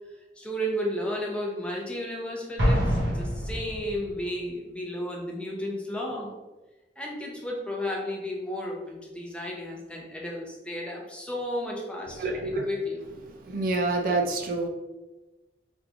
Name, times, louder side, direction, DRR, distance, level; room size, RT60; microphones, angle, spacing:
voice 1, 0.4-6.3 7.0-13.0, left 1 dB, 5° left, -2 dB, 0.6 m, -33 dB
Explosion, 2.6-4.2, equal, 80° right, 1.0 m, -26 dB
voice 2, 12.2-12.7 13.4-14.7, right 2 dB, 50° right, 3 dB, 0.3 m, -27 dB
3.6 x 3.0 x 2.4 m, 1.1 s
head